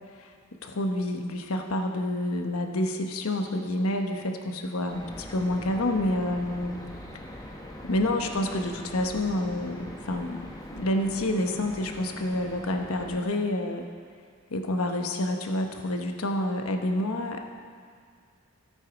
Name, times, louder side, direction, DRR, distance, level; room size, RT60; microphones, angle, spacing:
voice 1, 0.6-6.8 7.8-13.9 14.5-17.5, left 1 dB, 90° left, 4 dB, 1.1 m, -28 dB
sound 1, 4.9-13.2, left 1 dB, 20° left, 1.2 m, -43 dB
13.5 x 8.2 x 5.1 m, 2.1 s
head